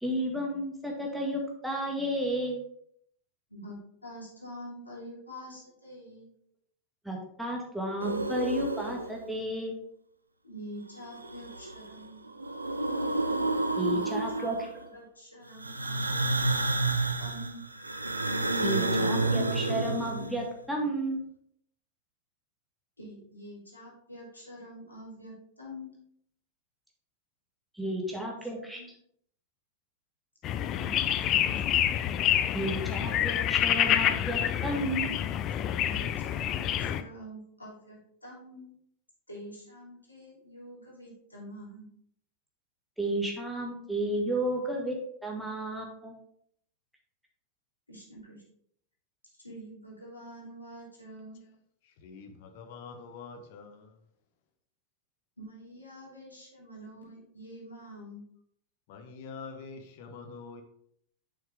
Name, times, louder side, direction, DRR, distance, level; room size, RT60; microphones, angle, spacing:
voice 1, 0.0-2.6 7.0-9.8 13.8-14.6 18.6-21.2 27.7-28.8 32.5-35.2 43.0-45.0 45.2-46.1, right 1 dB, ahead, -1 dB, 1.8 m, -32 dB
voice 2, 3.5-6.3 10.4-12.3 13.9-14.5 14.9-16.3 17.2-17.6 23.0-25.9 28.1-28.9 30.8-31.6 35.8-38.7 39.3-41.9 47.9-48.4 49.4-51.4 55.4-58.2, equal, 80° left, -6 dB, 3.0 m, -46 dB
sound 1, 8.0-9.3 11.0-11.9 12.3-14.8 15.6-20.5, right 2 dB, 80° right, 0.5 m, -30 dB
sound 2, 30.4-37.0, left 10 dB, 35° left, 0.4 m, -27 dB
voice 3, 52.0-53.8 58.9-60.6, left 4 dB, 50° left, 6 dB, 1.1 m, -45 dB
7.0 x 5.7 x 3.5 m, 0.69 s
figure-of-eight pair, 90°, 0 cm